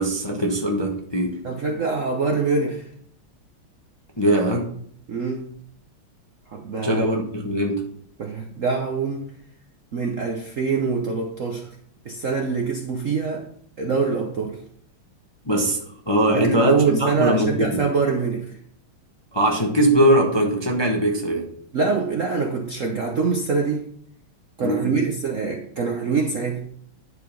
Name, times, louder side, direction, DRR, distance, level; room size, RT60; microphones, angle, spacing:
voice 1, 0.0-1.4 4.2-4.7 6.8-7.9 15.5-17.9 19.3-21.5 24.6-25.0, right 1 dB, 20° left, 0 dB, 0.8 m, -21 dB
voice 2, 1.4-2.9 5.1-5.5 6.5-7.1 8.2-9.3 9.9-11.7 12.0-13.4 13.8-14.6 16.3-18.4 21.7-23.9 24.6-26.6, right 4 dB, 55° right, 2 dB, 0.9 m, -24 dB
10.5 x 4.8 x 5.2 m, 0.63 s
omnidirectional pair, 2.3 m